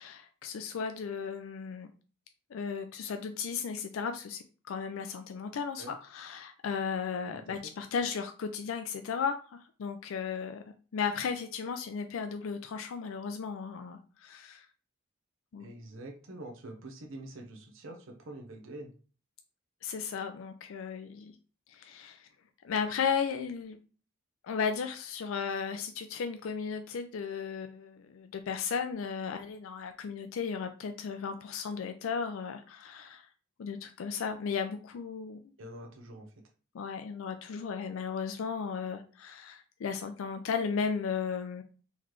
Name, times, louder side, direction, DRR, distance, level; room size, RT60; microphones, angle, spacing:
voice 1, 0.0-1.9 2.5-10.6 10.9-14.7 15.5-15.7 19.8-21.3 21.7-22.3 22.6-23.8 24.4-33.3 33.6-35.4 36.7-41.6, left 6 dB, 70° left, 7 dB, 0.4 m, -35 dB
voice 2, 7.2-7.5 15.6-18.9 35.6-36.3, right 1 dB, 60° right, 3 dB, 0.8 m, -45 dB
3.9 x 3.1 x 3.1 m, 0.38 s
head